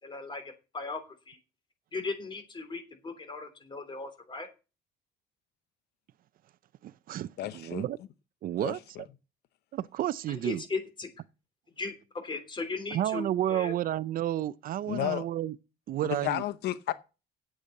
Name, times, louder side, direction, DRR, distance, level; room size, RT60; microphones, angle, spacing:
voice 1, 0.0-1.4 1.9-4.5 10.3-11.1 11.8-12.0 12.2-13.7, left 3 dB, 30° left, 3.3 m, -37 dB
voice 2, 6.8-8.0 8.4-8.8 9.7-10.6 12.9-15.6 15.9-16.4, right 12 dB, 55° right, 0.5 m, -31 dB
voice 3, 7.4-7.9 8.6-8.8 14.9-15.3 16.2-16.9, left 14 dB, 75° left, 0.7 m, -32 dB
8.5 x 8.1 x 7.6 m
cardioid pair, 110°, 17 cm